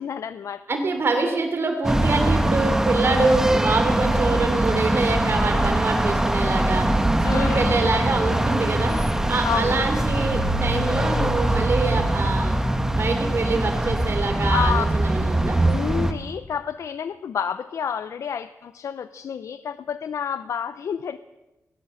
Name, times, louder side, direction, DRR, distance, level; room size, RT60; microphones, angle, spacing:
voice 1, 0.0-0.6 3.1-3.4 7.2-7.7 9.4-9.8 14.4-14.9 15.6-21.2, left 7 dB, 75° left, 13 dB, 0.6 m, -29 dB
voice 2, 0.7-6.9 7.3-9.0 9.3-12.6 12.9-15.6, right 3 dB, 50° right, 5 dB, 3.1 m, -25 dB
sound 1, 1.8-16.1, right 1 dB, 10° right, 1.6 m, -22 dB
20.0 x 17.5 x 7.5 m, 1.0 s
wide cardioid pair, 130°, 5 cm